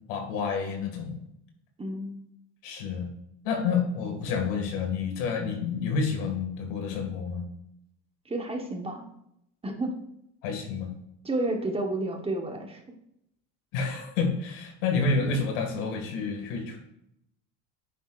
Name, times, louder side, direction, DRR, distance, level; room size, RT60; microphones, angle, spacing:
voice 1, 0.1-1.2 2.6-3.1 3.4-7.4 10.4-10.9 13.7-16.8, left 5 dB, 85° left, 3 dB, 2.3 m, -29 dB
voice 2, 1.8-2.2 8.3-9.1 9.6-9.9 11.2-12.8, right 2 dB, 15° right, 3 dB, 1.3 m, -31 dB
9.9 x 8.9 x 2.6 m, 0.77 s
supercardioid pair, 115°, 36 cm